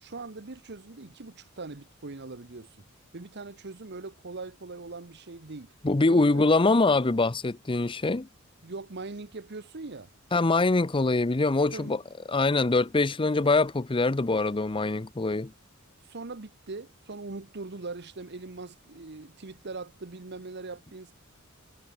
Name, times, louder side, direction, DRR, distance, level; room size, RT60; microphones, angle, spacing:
voice 1, 0.0-2.7 3.1-5.7 6.1-6.5 8.6-10.1 11.7-12.0 16.1-21.1, right 3 dB, 55° right, 1.1 m, -41 dB
voice 2, 5.8-8.3 10.3-12.0 12.3-15.5, left 3 dB, 25° left, 0.7 m, -24 dB
head